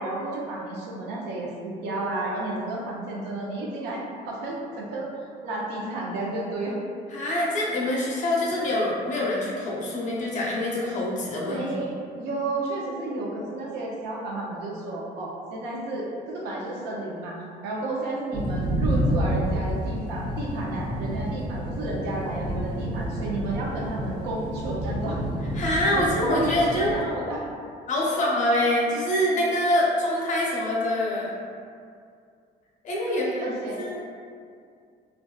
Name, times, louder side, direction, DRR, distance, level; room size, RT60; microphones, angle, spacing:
voice 1, 0.0-5.1 5.4-6.8 11.4-25.2 25.9-27.4 28.6-28.7 33.1-33.8, right 2 dB, 85° right, -3 dB, 0.5 m, -32 dB
voice 2, 7.1-11.6 25.5-27.0 27.9-31.3 32.8-34.1, left 1 dB, 45° left, -4 dB, 0.7 m, -25 dB
sound 1, 18.3-26.9, equal, 30° right, 0.5 m, -29 dB
2.5 x 2.3 x 2.3 m, 2.3 s
cardioid pair, 110°, 17 cm